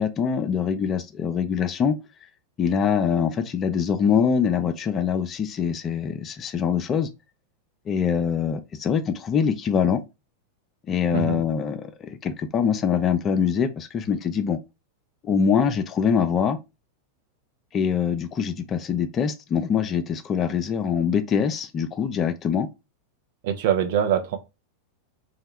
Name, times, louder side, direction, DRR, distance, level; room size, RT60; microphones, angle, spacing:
voice 1, 0.0-2.0 2.6-7.1 7.9-10.0 10.9-14.6 15.2-16.6 17.7-22.7, left 7 dB, 25° left, 0.4 m, -24 dB
voice 2, 11.1-11.4 23.4-24.4, right 9 dB, 50° right, 0.5 m, -23 dB
2.7 x 2.1 x 3.0 m
figure-of-eight pair, 90°, 0 cm